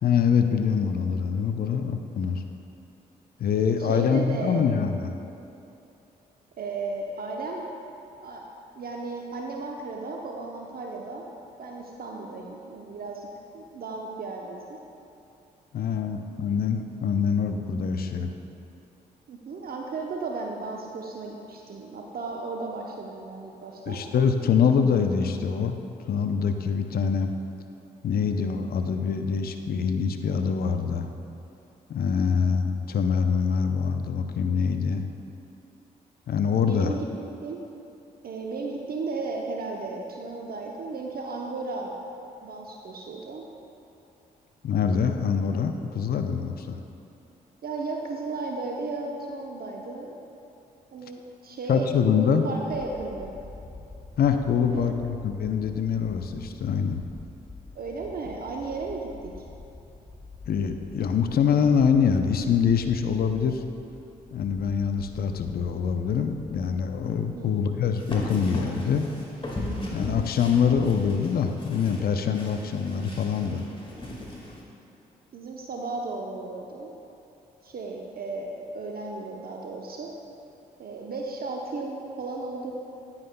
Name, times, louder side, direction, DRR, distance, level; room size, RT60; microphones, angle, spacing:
voice 1, 0.0-2.4 3.4-5.2 15.7-18.3 23.9-25.8 26.1-27.3 28.0-31.1 31.9-35.0 36.3-36.9 44.6-46.8 51.7-52.4 54.2-57.0 60.5-63.6 64.3-69.1 69.9-73.7, left 6 dB, 55° left, 7 dB, 0.6 m, -24 dB
voice 2, 3.8-4.7 6.6-7.7 8.2-8.4 8.8-11.3 11.6-13.3 13.5-14.8 19.3-24.0 36.7-37.1 37.4-37.6 38.2-42.0 42.4-43.4 47.6-50.3 50.9-53.3 54.7-55.2 57.7-59.3 67.3-67.6 75.3-76.9 77.6-80.1 80.8-82.7, right 3 dB, 50° right, 0 dB, 0.8 m, -34 dB
sound 1, 52.7-70.3, left 3 dB, 10° left, 1.4 m, -47 dB
sound 2, 68.0-74.6, left 1 dB, 25° left, 1.9 m, -37 dB
9.7 x 9.5 x 2.2 m, 2.8 s
hypercardioid pair, 40°, 19 cm